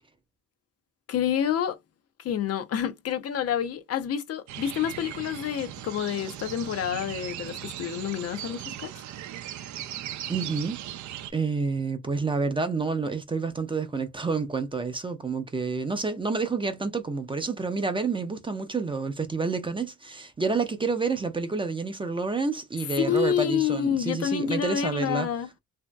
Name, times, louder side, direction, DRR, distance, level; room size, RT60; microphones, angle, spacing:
voice 1, 1.1-1.8 2.2-8.9 23.0-25.5, left 9 dB, 55° left, 0.5 m, -28 dB
sound 1, 4.5-11.3, right 12 dB, 70° right, 0.5 m, -38 dB
voice 2, 10.3-10.8 11.3-25.3, right 4 dB, 15° right, 0.5 m, -29 dB
2.9 x 2.6 x 2.2 m
cardioid pair, 90°, 30 cm